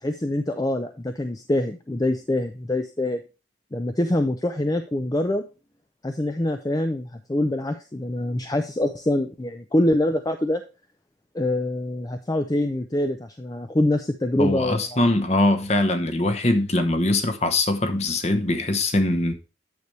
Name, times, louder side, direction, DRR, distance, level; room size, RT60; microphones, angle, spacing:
voice 1, 0.0-3.2 3.7-5.4 6.0-10.6 11.3-14.9, left 1 dB, 20° left, 0.5 m, -25 dB
voice 2, 14.4-19.3, left 2 dB, 35° left, 1.0 m, -22 dB
9.5 x 6.8 x 3.2 m
head